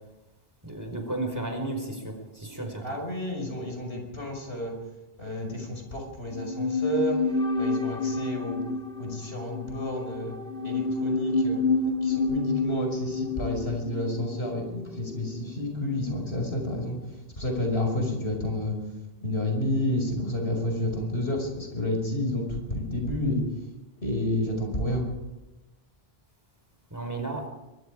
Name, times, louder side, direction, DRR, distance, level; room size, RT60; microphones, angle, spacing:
voice 1, 0.6-2.8 26.9-27.5, right 2 dB, 15° right, 3 dB, 4.8 m, -33 dB
voice 2, 2.8-4.7 5.2-7.2 7.6-8.6 9.0-10.3 10.6-11.6 12.0-17.0 17.4-18.7 19.2-23.4 24.0-25.0, left 1 dB, 85° left, 2 dB, 5.7 m, -30 dB
sound 1, 6.3-15.6 15.9-16.0, left 3 dB, 70° left, 2.3 m, -29 dB
23.5 x 21.5 x 5.0 m, 1.0 s
omnidirectional pair, 1.0 m